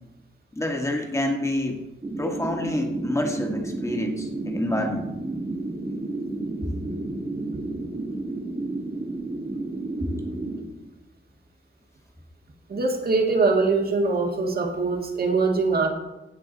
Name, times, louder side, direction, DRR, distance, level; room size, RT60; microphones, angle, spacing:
voice 1, 0.5-1.8 2.2-5.1, left 1 dB, 15° left, 2 dB, 1.6 m, -27 dB
sound 1, 2.0-10.6, right 2 dB, 25° right, 1.5 m, -31 dB
voice 2, 12.7-15.9, right 3 dB, 50° right, 3 dB, 1.8 m, -22 dB
16.5 x 6.0 x 4.0 m, 1.0 s
wide cardioid pair, 115°, 20 cm